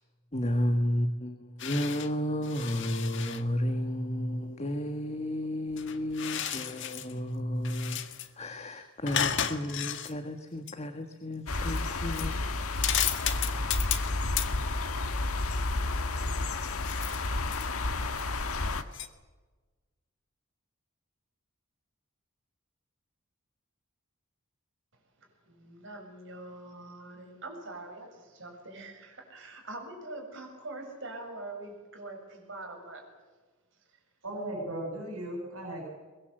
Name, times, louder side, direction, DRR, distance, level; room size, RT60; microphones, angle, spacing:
voice 1, 0.3-8.0 8.3-12.4, equal, 30° left, 1.5 m, -32 dB
sound 1, 1.6-2.1 2.4-3.5 5.7-7.1 7.6-8.3 9.1-10.1 10.7-10.8 11.7-11.8 12.1-12.3 12.8-14.1 14.4-14.5 16.8-17.7 18.2-18.3 18.9-19.1, left 9 dB, 55° left, 1.7 m, -33 dB
sound 2, 11.5-18.8, left 2 dB, 90° left, 1.6 m, -31 dB
voice 2, 25.5-33.1 33.9-34.0, right 2 dB, 60° right, 7.1 m, -44 dB
voice 3, 34.2-35.9, right 1 dB, 75° right, 7.2 m, -36 dB
23.0 x 22.0 x 8.0 m
head